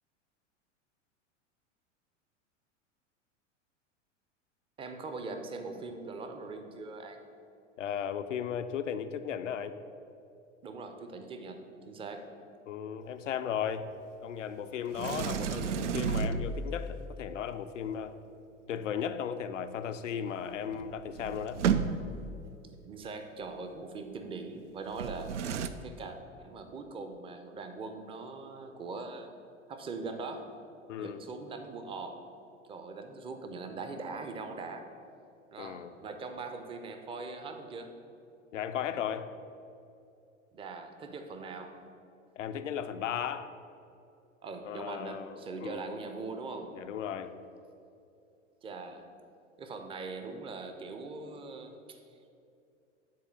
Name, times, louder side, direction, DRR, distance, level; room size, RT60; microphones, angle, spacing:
voice 1, 4.8-7.2 10.6-12.3 22.8-25.3 25.8-29.3 29.7-30.5 31.0-32.2 32.7-34.9 35.5-37.9 40.5-41.8 44.4-46.9 48.6-49.1 49.6-52.0, right 3 dB, 15° right, 6 dB, 0.6 m, -41 dB
voice 2, 7.8-9.7 12.7-13.9 14.2-18.1 18.7-21.6 30.9-31.2 35.6-35.9 38.5-39.3 42.4-43.5 44.6-45.8 46.7-47.3, left 8 dB, 75° left, 10 dB, 0.5 m, -36 dB
Sliding door, 14.9-16.9 20.4-20.5 20.7-22.3 24.9-25.7, right 6 dB, 70° right, 0.5 m, -32 dB
7.6 x 4.2 x 6.7 m, 2.6 s
figure-of-eight pair, 85°, 38 cm